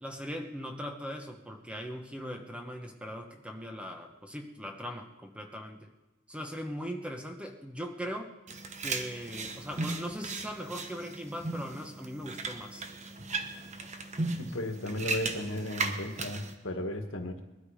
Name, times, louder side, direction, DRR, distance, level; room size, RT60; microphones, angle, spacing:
voice 1, 0.0-5.9 6.3-8.3 8.8-12.8, equal, 5° right, 4 dB, 1.1 m, -40 dB
sound 1, 8.5-16.5, right 3 dB, 35° right, 1.1 m, -37 dB
voice 2, 14.4-17.4, left 1 dB, 75° left, 5 dB, 1.7 m, -35 dB
21.0 x 12.5 x 5.0 m, 1.1 s
head